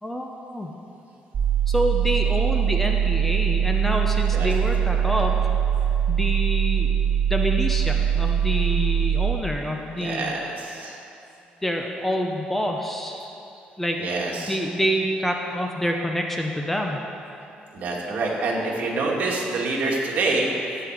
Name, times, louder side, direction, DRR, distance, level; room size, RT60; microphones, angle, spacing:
voice 1, 0.0-0.7 1.7-5.3 6.1-6.9 7.3-10.3 11.6-13.3 13.8-14.0 14.4-17.0, equal, 5° left, 2 dB, 0.7 m, -27 dB
sound 1, 1.3-9.3, right 9 dB, 40° right, 2.2 m, -22 dB
voice 2, 4.9-5.2 10.0-11.0 14.0-14.6 17.7-20.5, right 3 dB, 55° right, -2 dB, 2.2 m, -26 dB
15.5 x 7.8 x 4.9 m, 2.7 s
cardioid pair, 135°, 3 cm